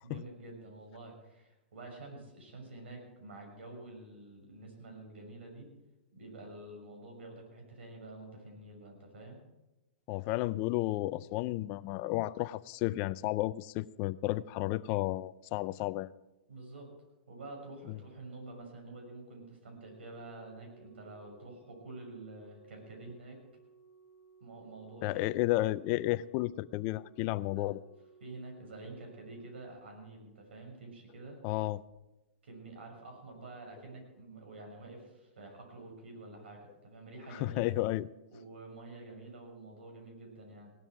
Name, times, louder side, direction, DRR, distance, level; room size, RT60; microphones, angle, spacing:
voice 1, 0.0-5.7 6.1-9.4 16.5-16.9 17.3-23.4 24.4-25.2 27.5-27.8 28.2-31.4 32.4-37.7 38.3-40.7, right 2 dB, 85° right, 2 dB, 6.3 m, -48 dB
voice 2, 10.1-16.1 17.9-18.0 25.0-27.8 31.4-31.8 37.3-38.1, left 17 dB, 35° left, 16 dB, 0.5 m, -32 dB
Organ, 19.8-30.7 31.8-32.0, right 5 dB, 25° right, 4.3 m, -61 dB
17.5 x 12.5 x 4.7 m, 1.0 s
hypercardioid pair, 150°, 6 cm